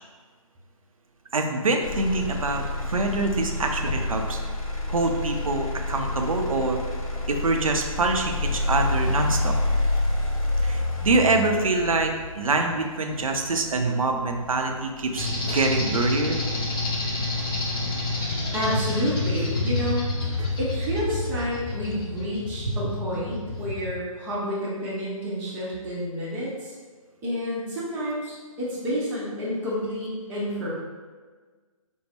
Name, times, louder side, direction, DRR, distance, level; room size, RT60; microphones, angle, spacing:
voice 1, 1.3-4.4 4.9-6.8 7.3-9.5 10.6-16.4 20.4-20.6 22.7-22.9, right 3 dB, 75° right, 3 dB, 0.6 m, -25 dB
Motor vehicle (road), 1.8-15.8 16.3-16.8, left 2 dB, 75° left, 0.9 m, -29 dB
sound 1, 15.2-23.9, left 2 dB, 40° left, 1.1 m, -29 dB
voice 2, 18.5-20.0 20.6-26.7 27.2-30.7, equal, 10° right, -8 dB, 0.7 m, -29 dB
5.2 x 2.0 x 3.4 m, 1.4 s
figure-of-eight pair, 145°, 18 cm